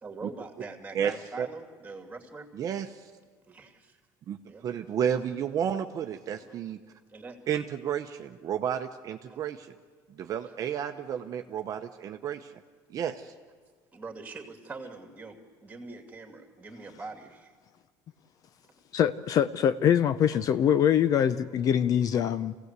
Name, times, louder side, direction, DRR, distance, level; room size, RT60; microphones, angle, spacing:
voice 1, 0.0-2.5 3.5-4.0 4.5-4.7 6.4-6.6 7.1-7.4 9.3-9.4 13.9-17.5, right 3 dB, 15° right, 4 dB, 2.6 m, -43 dB
voice 2, 0.9-1.5 2.5-3.1 4.3-4.4 4.6-6.8 7.5-9.7 10.2-12.5 12.9-13.3, right 8 dB, 45° right, 6 dB, 0.8 m, -32 dB
voice 3, 18.9-22.5, left 9 dB, 45° left, 14 dB, 0.6 m, -24 dB
24.5 x 16.5 x 8.2 m, 1.6 s
cardioid pair, 130°, 8 cm